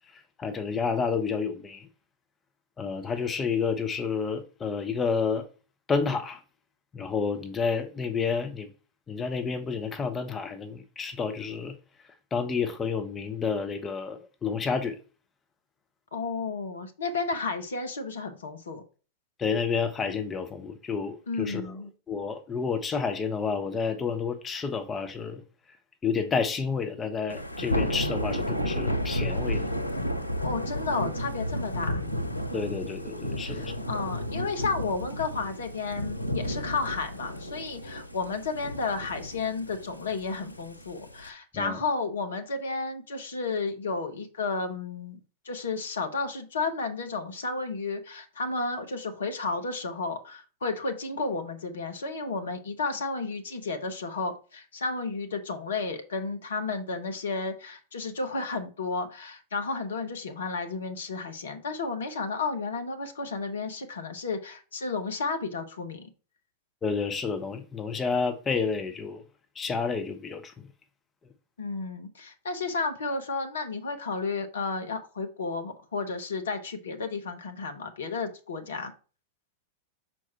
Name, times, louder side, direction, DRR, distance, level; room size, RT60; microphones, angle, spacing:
voice 1, 0.1-1.9 2.8-5.5 5.9-6.4 6.9-8.7 9.1-11.8 12.3-15.0 19.4-21.8 22.1-25.4 26.0-29.6 32.5-33.7 41.5-41.8 66.8-69.2 69.6-70.5, left 5 dB, 20° left, 0.8 m, -30 dB
voice 2, 16.1-18.8 21.3-21.9 30.4-32.0 33.4-45.2 45.4-66.1 71.6-78.9, left 4 dB, 65° left, 1.1 m, -32 dB
Thunder / Rain, 27.3-41.3, equal, 90° right, 0.7 m, -32 dB
6.1 x 4.5 x 4.4 m
figure-of-eight pair, 90°, 0 cm